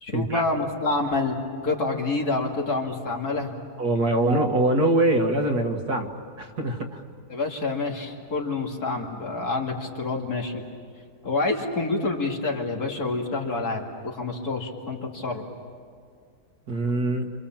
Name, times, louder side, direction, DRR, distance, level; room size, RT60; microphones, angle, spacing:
voice 1, 0.0-3.5 7.3-10.6 11.2-15.4, left 3 dB, 60° left, 0 dB, 3.0 m, -27 dB
voice 2, 3.8-6.1 6.4-7.0 16.7-17.3, right 1 dB, 60° right, 4 dB, 2.2 m, -23 dB
28.0 x 27.0 x 7.4 m, 2.1 s
omnidirectional pair, 1.9 m